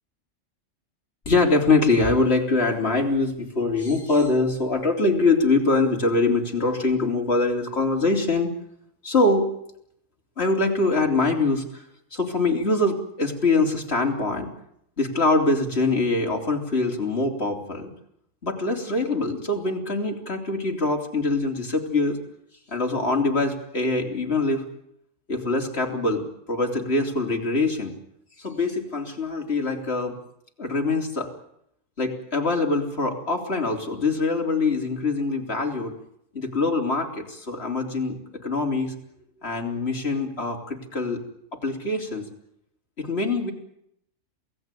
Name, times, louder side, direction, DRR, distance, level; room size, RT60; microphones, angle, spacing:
voice 1, 1.3-8.5 9.0-9.5 10.4-11.8 12.1-14.5 15.0-17.9 18.4-22.2 22.7-24.7 25.3-27.9 28.4-30.1 30.6-31.3 32.0-35.9 36.3-38.9 39.4-41.2 41.5-42.3 43.0-43.5, left 3 dB, 50° left, 2 dB, 4.0 m, -23 dB
27.5 x 17.5 x 9.3 m, 0.75 s
omnidirectional pair, 1.4 m